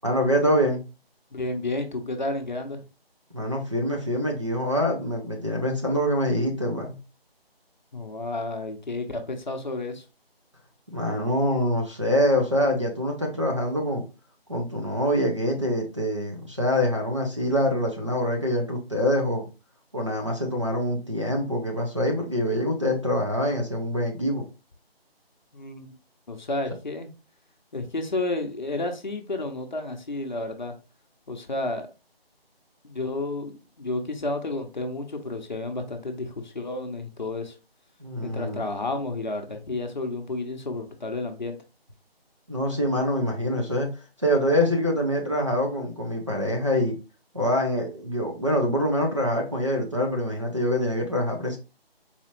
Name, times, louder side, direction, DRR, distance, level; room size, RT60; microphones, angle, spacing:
voice 1, 0.0-0.8 3.3-7.0 10.9-14.0 14.5-19.5 19.9-24.5 38.0-38.7 42.5-43.9 44.2-47.0 47.3-51.6, equal, 30° right, -1 dB, 0.5 m, -25 dB
voice 2, 1.3-2.8 7.9-10.0 25.5-26.0 26.3-27.1 27.7-30.7 31.3-31.9 32.8-37.5 38.2-41.6, left 2 dB, 50° left, 5 dB, 0.7 m, -31 dB
4.1 x 2.4 x 2.9 m, 0.30 s
figure-of-eight pair, 170°, 31 cm